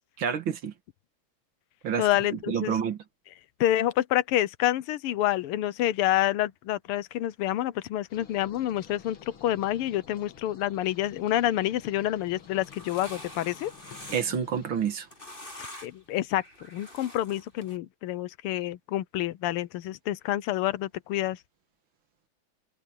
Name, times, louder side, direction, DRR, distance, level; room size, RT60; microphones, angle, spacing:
voice 1, 0.2-0.7 1.8-3.0 14.1-15.1, right 7 dB, 70° right, 2.2 m, -29 dB
voice 2, 2.0-2.8 3.6-13.7 15.6-16.4 16.7-21.4, left 13 dB, 85° left, 1.7 m, -28 dB
sound 1, 8.1-14.9, left 7 dB, 70° left, 3.0 m, -51 dB
sound 2, 12.4-14.4 14.8-16.0 16.3-17.8, left 1 dB, 25° left, 6.8 m, -46 dB
omnidirectional pair, 2.4 m